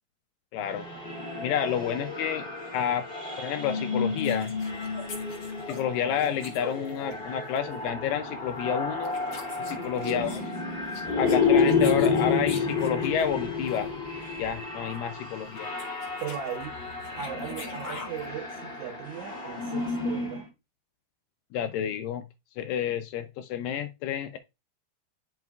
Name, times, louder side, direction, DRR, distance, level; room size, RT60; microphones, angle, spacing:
voice 1, 0.5-0.9 1.4-2.5 2.7-3.1 3.4-4.5 5.7-9.1 9.6-10.4 11.2-13.9 14.4-15.7 21.5-22.2 22.6-24.4, left 9 dB, 80° left, 2.1 m, -30 dB
sound 1, 0.6-20.5, left 4 dB, 20° left, 2.1 m, -30 dB
sound 2, 4.2-7.3 7.6-7.8 8.6-8.7 9.0-13.3 13.7-13.8 14.1-14.2 14.4-14.6 14.9-15.0 15.4-18.3, left 4 dB, 60° left, 1.2 m, -44 dB
voice 2, 16.2-16.7 17.2-20.5, right 9 dB, 75° right, 1.9 m, -38 dB
9.3 x 5.2 x 2.3 m
omnidirectional pair, 4.3 m